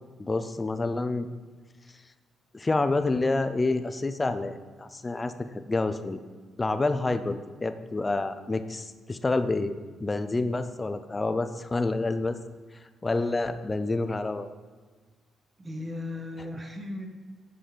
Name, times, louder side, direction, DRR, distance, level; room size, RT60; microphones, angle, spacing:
voice 1, 0.2-1.3 2.5-6.2 6.6-9.7 10.0-12.4 13.0-14.5, left 3 dB, 25° left, 10 dB, 0.5 m, -28 dB
voice 2, 15.6-17.1, left 2 dB, 25° right, 4 dB, 1.2 m, -36 dB
7.9 x 5.5 x 5.0 m, 1.4 s
cardioid pair, 90°, 0 cm